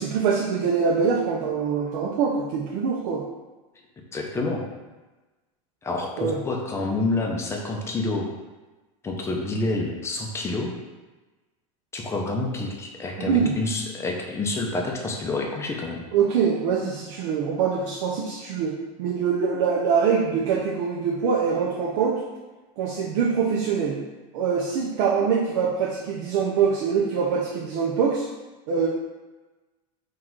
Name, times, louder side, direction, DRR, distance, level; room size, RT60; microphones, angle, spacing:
voice 1, 0.0-3.2 6.2-6.4 13.2-13.5 16.1-22.2 22.8-24.0 24.3-28.3 28.7-28.9, right 6 dB, 65° right, -2 dB, 0.7 m, -24 dB
voice 2, 4.1-4.6 5.8-8.3 9.0-10.7 11.9-16.0, left 2 dB, 15° left, 1 dB, 0.6 m, -28 dB
3.9 x 2.5 x 4.5 m, 1.2 s
supercardioid pair, 145°, 18 cm